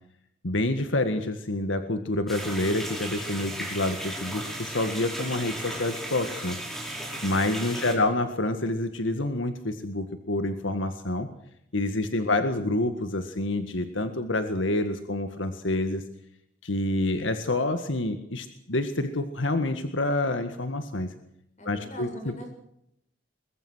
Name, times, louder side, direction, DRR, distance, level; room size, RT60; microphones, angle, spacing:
voice 1, 0.4-6.6 7.2-11.3 11.7-16.0 16.6-21.1 21.6-22.3, left 2 dB, 80° left, 8 dB, 1.8 m, -28 dB
sound 1, 2.3-8.0, right 1 dB, ahead, 5.2 m, -35 dB
voice 2, 7.7-8.1 12.0-12.6 21.6-22.5, equal, 35° left, 4 dB, 7.4 m, -44 dB
23.0 x 21.5 x 6.4 m, 0.77 s
head